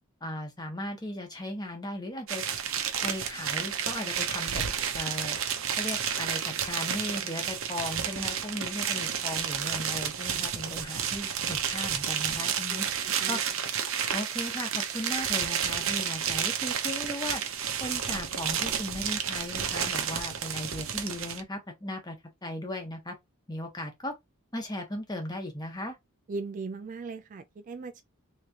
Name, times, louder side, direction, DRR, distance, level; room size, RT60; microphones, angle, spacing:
voice 1, 0.2-2.4 3.0-4.6 4.9-5.4 5.8-12.9 13.3-13.4 14.1-17.4 17.8-22.2 22.4-23.2 23.5-24.1 24.5-26.0, left 1 dB, 20° left, 1.1 m, -37 dB
sound 1, 2.3-21.4, right 8 dB, 65° right, 0.7 m, -31 dB
voice 2, 12.7-13.4 26.3-28.0, right 3 dB, 35° right, 0.3 m, -39 dB
3.6 x 3.2 x 2.8 m
head